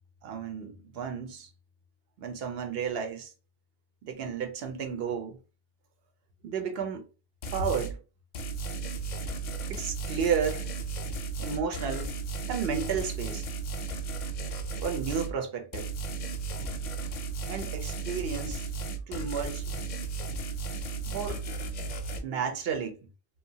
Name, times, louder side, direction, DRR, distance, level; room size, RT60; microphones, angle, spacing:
voice 1, 0.2-1.5 2.2-3.3 4.0-5.4 6.4-7.0 7.5-8.0 9.7-10.7 11.4-12.1 12.5-13.4 14.8-15.9 16.6-16.7 17.5-18.7 19.1-19.8 21.1-21.4 22.2-23.0, right 6 dB, 70° right, 0.8 m, -32 dB
sound 1, 7.4-8.0 8.3-15.3 15.7-22.2, right 4 dB, 55° left, 0.5 m, -35 dB
2.7 x 2.2 x 2.7 m
omnidirectional pair, 1.1 m